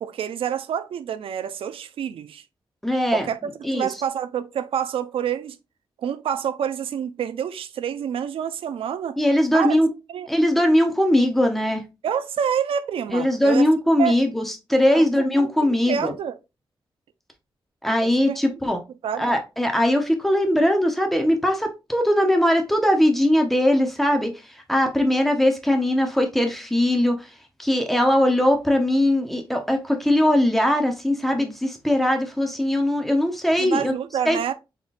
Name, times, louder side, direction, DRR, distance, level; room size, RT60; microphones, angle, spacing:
voice 1, 0.0-2.4 3.1-5.6 6.0-9.2 9.5-9.8 10.1-10.3 12.0-13.6 14.0-14.2 14.9-16.4 18.0-18.4 19.0-19.3 33.6-34.5, right 8 dB, 90° right, 0.4 m, -28 dB
voice 2, 2.8-3.9 9.2-9.9 10.3-11.8 13.1-16.1 17.8-18.8 19.2-24.3 24.7-27.3 27.6-33.9 34.3-34.4, left 1 dB, ahead, 0.8 m, -20 dB
3.9 x 3.6 x 2.5 m
wide cardioid pair, 135°, 9 cm